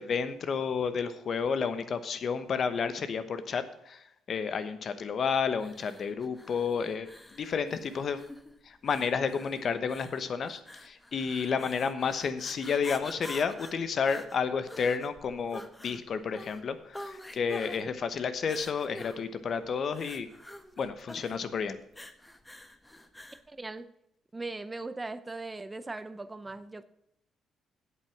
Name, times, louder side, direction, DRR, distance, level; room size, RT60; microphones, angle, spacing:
voice 1, 0.0-8.2 8.6-20.3 20.8-21.8, left 6 dB, 55° left, 1.0 m, -31 dB
sound 1, 5.6-23.5, left 1 dB, 10° left, 1.0 m, -48 dB
voice 2, 23.5-23.9 24.3-26.8, right 3 dB, 20° right, 0.6 m, -39 dB
8.4 x 7.9 x 5.9 m
cardioid pair, 90°, 0 cm